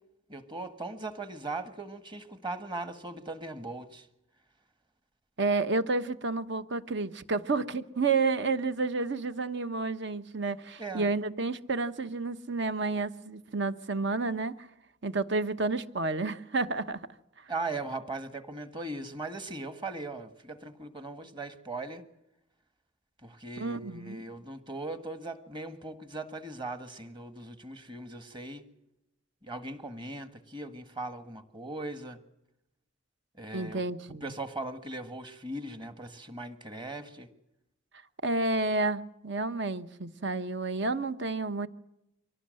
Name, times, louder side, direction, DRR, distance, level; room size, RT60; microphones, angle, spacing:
voice 1, 0.3-4.1 10.8-11.1 17.5-22.0 23.2-28.6 29.4-32.2 33.4-33.8 34.2-37.3, right 2 dB, 20° right, 1.6 m, -39 dB
voice 2, 5.4-14.7 15.0-17.0 23.6-24.2 33.5-34.3 38.2-41.7, right 3 dB, 55° right, 1.1 m, -30 dB
24.5 x 17.5 x 7.8 m
head